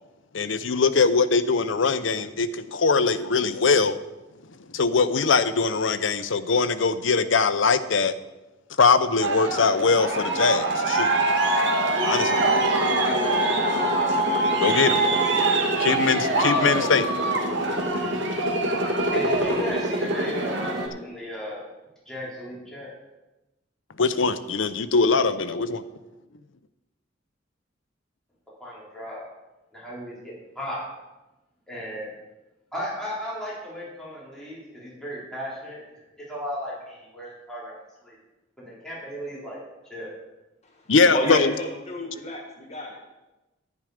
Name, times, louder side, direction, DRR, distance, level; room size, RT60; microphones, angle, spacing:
voice 1, 0.3-4.0 4.7-8.1 8.8-11.1 12.0-12.4 14.6-15.0 15.8-17.1 24.0-25.8 40.9-41.5, left 4 dB, 85° left, 12 dB, 0.7 m, -22 dB
Aircraft, 9.2-20.9, right 2 dB, 70° right, 2.0 m, -23 dB
voice 2, 19.1-21.6 22.1-22.9 28.6-29.3 29.7-30.8 31.7-32.1 32.7-35.8 36.3-37.7 38.0-38.1 38.6-39.6 39.9-40.1 41.1-41.4, equal, 5° left, -8 dB, 4.2 m, -35 dB
voice 3, 41.1-43.1, left 1 dB, 35° left, 2 dB, 1.4 m, -29 dB
11.0 x 10.5 x 5.0 m, 1.0 s
head